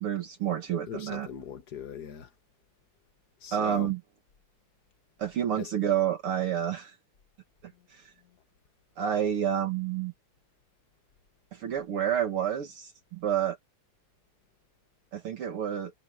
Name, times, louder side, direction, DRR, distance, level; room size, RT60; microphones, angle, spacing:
voice 1, 0.0-1.3 3.5-4.0 5.2-6.9 9.0-10.1 11.5-13.6 15.1-15.9, right 9 dB, 55° right, 1.7 m, -29 dB
voice 2, 0.9-2.3 3.4-3.9 5.6-5.7, left 8 dB, 70° left, 0.9 m, -40 dB
omnidirectional pair, 3.8 m